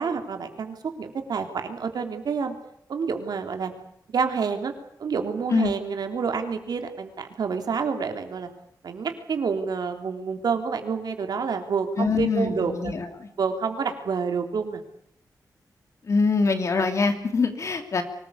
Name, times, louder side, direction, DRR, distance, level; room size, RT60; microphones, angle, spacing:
voice 1, 0.0-2.5 2.9-3.7 4.1-4.7 5.0-8.5 8.8-12.9 13.4-14.8, right 5 dB, 75° right, 6 dB, 3.3 m, -28 dB
voice 2, 12.0-13.3 16.1-18.0, left 4 dB, 45° left, 7 dB, 2.8 m, -24 dB
24.5 x 19.5 x 8.5 m, 0.70 s
wide cardioid pair, 175°, 7 cm